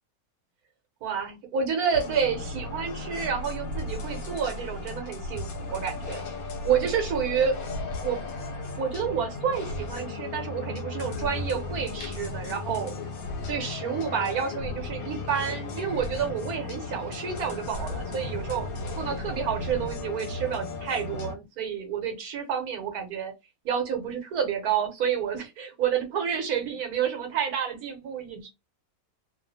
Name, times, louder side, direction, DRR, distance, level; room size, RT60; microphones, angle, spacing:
voice 1, 1.0-6.2 6.6-7.6 8.0-8.2 8.8-12.9 13.5-18.7 19.0-23.3 23.6-28.5, right 7 dB, 85° right, 1.3 m, -29 dB
sound 1, 1.9-21.3, left 2 dB, 80° left, 1.2 m, -35 dB
2.7 x 2.4 x 2.6 m
omnidirectional pair, 1.5 m